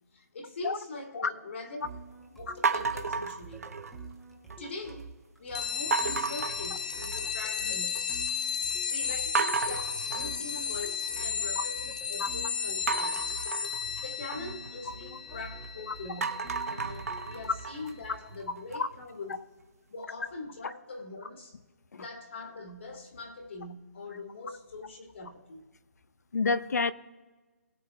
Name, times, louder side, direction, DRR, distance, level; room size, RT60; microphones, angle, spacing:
voice 1, 0.1-2.0 2.4-3.7 4.6-5.1 5.4-8.1 8.9-13.2 14.0-16.4 16.7-19.4 19.9-21.6 22.0-25.7, left 2 dB, 45° left, 1.9 m, -42 dB
sound 1, 1.8-18.5, right 3 dB, ahead, 0.9 m, -48 dB
sound 2, 2.6-4.1 4.5-5.0 5.9-7.4 7.8-8.3 8.7-8.8 9.3-11.5 12.9-15.7 16.1-19.0, right 5 dB, 60° right, 0.9 m, -33 dB
sound 3, 5.6-17.7, left 7 dB, 25° left, 0.4 m, -34 dB
voice 2, 26.3-26.9, left 4 dB, 70° left, 0.7 m, -28 dB
20.0 x 7.9 x 2.3 m
hypercardioid pair, 175°, 9 cm